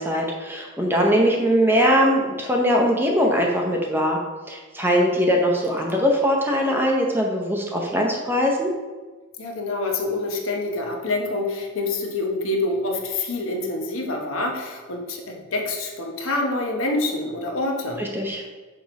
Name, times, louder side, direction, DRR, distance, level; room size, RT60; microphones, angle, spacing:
voice 1, 0.0-4.2 4.5-8.7 18.0-18.4, equal, 10° right, 0 dB, 0.6 m, -21 dB
voice 2, 9.4-18.0, left 2 dB, 80° left, 1 dB, 1.0 m, -26 dB
6.2 x 3.0 x 5.1 m, 1.3 s
head